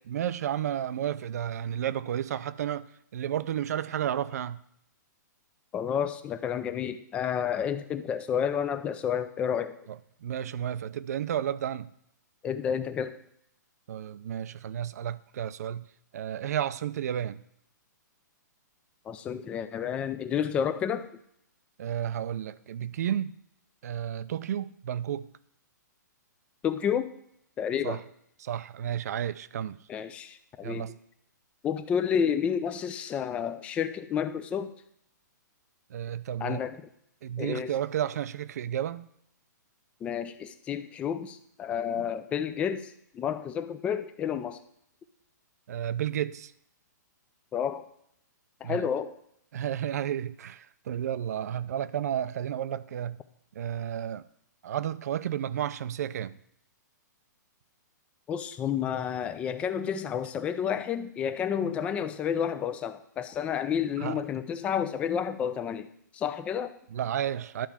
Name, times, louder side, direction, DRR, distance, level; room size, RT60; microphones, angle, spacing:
voice 1, 0.1-4.6 9.9-11.9 13.9-15.9 16.1-17.4 21.8-23.4 23.8-25.3 27.8-28.0 28.4-29.8 30.6-31.0 35.9-36.6 37.2-39.1 41.9-42.1 45.7-46.5 48.6-48.9 49.5-53.2 53.6-54.3 54.6-56.3 64.0-64.2 66.9-67.7, right 10 dB, 55° right, 0.5 m, -32 dB
voice 2, 5.7-9.8 12.4-13.2 19.1-21.1 26.6-27.1 27.6-28.0 29.9-30.9 31.6-34.7 36.4-36.8 37.4-37.7 40.0-44.6 47.5-47.9 48.6-49.1 58.3-65.9 66.1-66.7, left 8 dB, 10° left, 0.4 m, -30 dB
11.5 x 4.6 x 7.2 m
hypercardioid pair, 160°, 10 cm